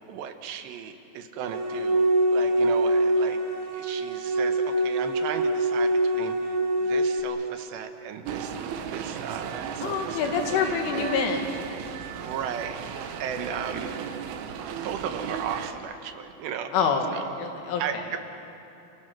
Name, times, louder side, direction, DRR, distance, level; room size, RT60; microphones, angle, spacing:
voice 1, 0.1-3.4 3.7-8.6 8.9-11.1 12.2-12.8 13.2-13.9 14.8-16.7 17.1-17.2 17.8-18.2, right 8 dB, 70° right, 7 dB, 3.3 m, -35 dB
sound 1, 1.4-7.2, right 1 dB, 25° right, 2.9 m, -24 dB
sound 2, 8.2-15.7, right 7 dB, 90° right, 3.8 m, -35 dB
voice 2, 9.8-11.4 16.7-18.0, left 5 dB, 90° left, 3 dB, 4.6 m, -26 dB
30.0 x 28.5 x 6.2 m, 2.9 s
omnidirectional pair, 5.4 m